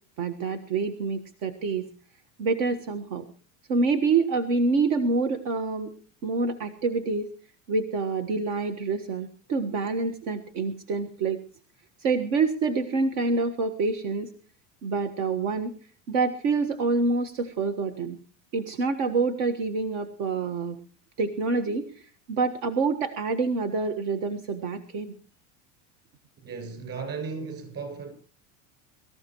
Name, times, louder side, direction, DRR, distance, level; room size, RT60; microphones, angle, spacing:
voice 1, 0.2-1.8 2.4-3.2 3.7-5.9 6.2-7.3 7.7-11.4 12.0-14.3 14.8-15.7 16.1-18.2 18.5-20.8 21.2-25.1, right 4 dB, 75° right, 1.6 m, -27 dB
voice 2, 26.4-28.1, right 5 dB, 40° right, 7.0 m, -35 dB
24.0 x 14.0 x 3.1 m
supercardioid pair, 140°, 38 cm